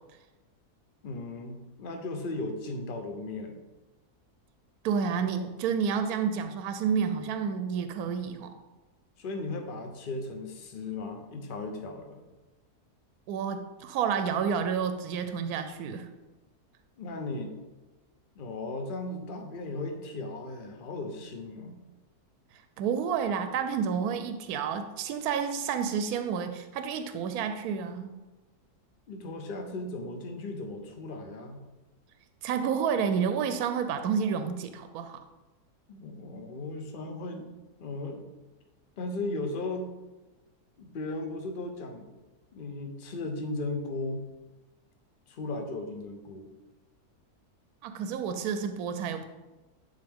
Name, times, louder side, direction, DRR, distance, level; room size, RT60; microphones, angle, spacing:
voice 1, 1.0-3.6 9.2-12.2 17.0-17.6 18.4-21.8 29.1-31.6 35.9-37.5 37.8-38.3 39.0-40.0 40.8-42.1 42.5-44.3 45.3-46.5, left 2 dB, 45° left, 5 dB, 0.8 m, -36 dB
voice 2, 4.8-8.5 13.3-16.1 22.8-28.1 32.4-35.2 47.8-49.3, right 7 dB, 75° right, 8 dB, 1.1 m, -30 dB
10.5 x 4.0 x 3.6 m, 1.1 s
omnidirectional pair, 1.6 m